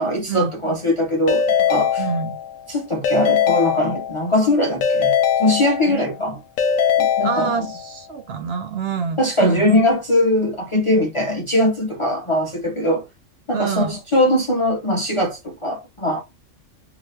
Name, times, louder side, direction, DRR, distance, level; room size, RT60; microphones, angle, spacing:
voice 1, 0.0-2.0 2.7-5.1 5.4-6.4 7.0-7.5 9.2-13.0 13.5-16.2, left 1 dB, 40° left, 0.5 m, -21 dB
Keyboard (musical) / Ringtone, 1.3-2.6 3.0-4.4 4.8-6.2 6.6-7.9, left 8 dB, 90° left, 1.0 m, -21 dB
voice 2, 2.0-2.4 5.9-6.1 7.2-9.7 13.5-13.9, right 6 dB, 65° right, 0.7 m, -26 dB
2.8 x 2.5 x 3.1 m
omnidirectional pair, 1.3 m